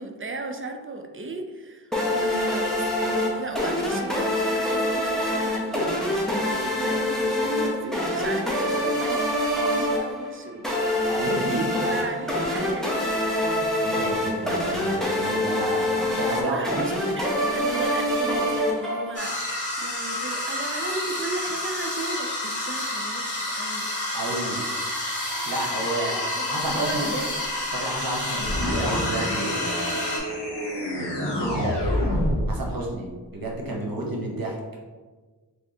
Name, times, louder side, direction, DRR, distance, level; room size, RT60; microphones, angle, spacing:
voice 1, 0.0-10.7 11.2-13.2 16.2-23.9 24.3-24.6 26.0-27.4, right 3 dB, 30° right, 5 dB, 0.4 m, -35 dB
sound 1, 1.9-19.4, left 1 dB, ahead, 0.8 m, -25 dB
voice 2, 11.1-11.7 13.4-16.9 24.1-24.6 25.5-26.2 26.5-27.1 27.7-30.2 31.0-31.8 32.5-34.6, right 2 dB, 55° right, -1 dB, 0.9 m, -31 dB
sound 2, 19.1-30.2, left 1 dB, 45° left, 1.0 m, -29 dB
sound 3, 28.4-32.6, equal, 75° left, 0.8 m, -27 dB
3.5 x 3.4 x 2.6 m, 1.4 s
wide cardioid pair, 45°, 42 cm